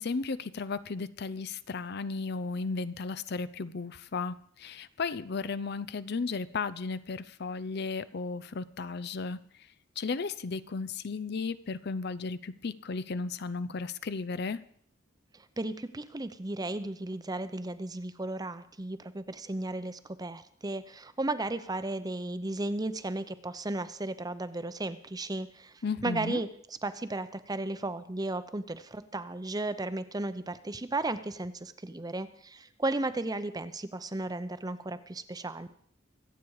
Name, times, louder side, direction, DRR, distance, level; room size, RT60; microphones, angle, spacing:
voice 1, 0.0-9.4 10.0-14.6 25.8-26.4, left 4 dB, 55° left, 16 dB, 0.6 m, -34 dB
voice 2, 15.3-35.7, right 2 dB, 20° right, 12 dB, 0.7 m, -35 dB
24.5 x 8.6 x 4.8 m, 0.63 s
head